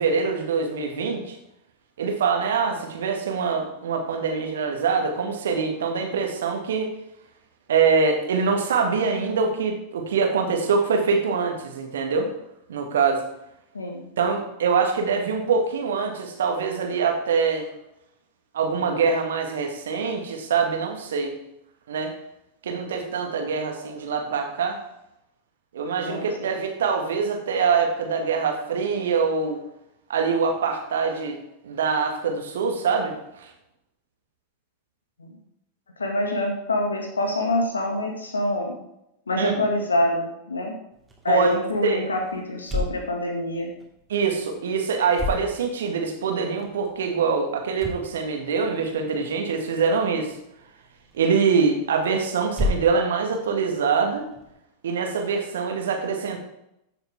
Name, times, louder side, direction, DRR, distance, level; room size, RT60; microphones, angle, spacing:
voice 1, 0.0-1.4 2.0-6.9 7.7-12.3 12.7-13.2 14.2-17.7 18.5-21.4 21.9-22.1 22.6-24.8 25.7-29.6 30.1-31.4 31.6-33.5 39.4-39.5 41.3-41.5 41.8-42.0 44.1-50.3 51.1-54.3 54.8-56.4, right 5 dB, 60° right, 3 dB, 2.0 m, -24 dB
voice 2, 13.7-14.1 26.1-26.5 35.2-35.4 36.0-38.8 39.3-40.7 41.2-43.7, left 1 dB, 75° left, 3 dB, 2.1 m, -26 dB
sound 1, 40.9-54.5, left 1 dB, 10° right, 2.7 m, -36 dB
14.0 x 7.0 x 3.6 m, 0.82 s
figure-of-eight pair, 90°, 0 cm